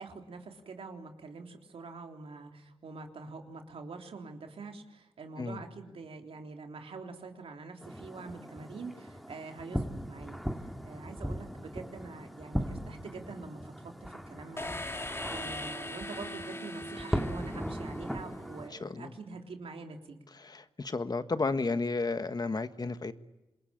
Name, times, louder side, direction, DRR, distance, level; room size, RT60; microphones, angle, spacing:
voice 1, 0.0-14.8 15.3-20.2, right 4 dB, 85° right, 3 dB, 3.5 m, -45 dB
sound 1, 7.8-18.7, equal, ahead, 2.3 m, -39 dB
sound 2, 14.6-18.4, left 1 dB, 25° left, 3.3 m, -40 dB
voice 2, 18.8-19.1 20.4-23.1, left 3 dB, 45° left, 11 dB, 1.4 m, -32 dB
27.0 x 21.5 x 8.8 m, 1.0 s
cardioid pair, 70°, 10 cm